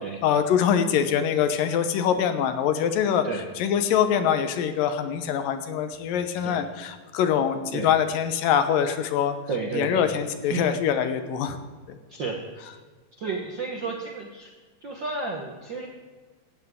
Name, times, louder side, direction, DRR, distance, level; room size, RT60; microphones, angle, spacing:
voice 1, 0.2-3.3 3.6-9.4 9.7-11.6 11.9-12.0, left 8 dB, 75° left, 9 dB, 2.6 m, -24 dB
voice 2, 9.5-10.0 10.5-10.7 12.1-12.7 13.2-14.5 14.8-15.9, right 4 dB, 60° right, 1 dB, 1.2 m, -32 dB
17.5 x 14.0 x 3.7 m, 1.4 s
omnidirectional pair, 4.0 m